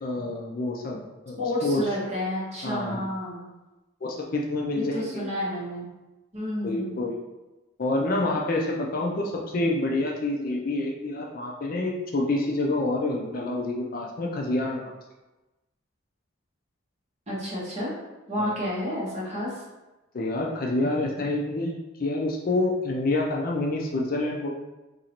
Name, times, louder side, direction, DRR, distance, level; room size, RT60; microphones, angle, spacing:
voice 1, 0.0-1.8 2.6-3.0 4.0-5.3 6.6-7.2 7.8-14.9 18.4-18.6 20.1-24.5, left 2 dB, 45° left, -1 dB, 0.4 m, -27 dB
voice 2, 1.4-3.4 4.7-5.9 6.3-7.0 17.3-17.9 18.3-19.6, left 1 dB, 30° right, -6 dB, 1.2 m, -30 dB
2.9 x 2.6 x 4.3 m, 1.1 s
head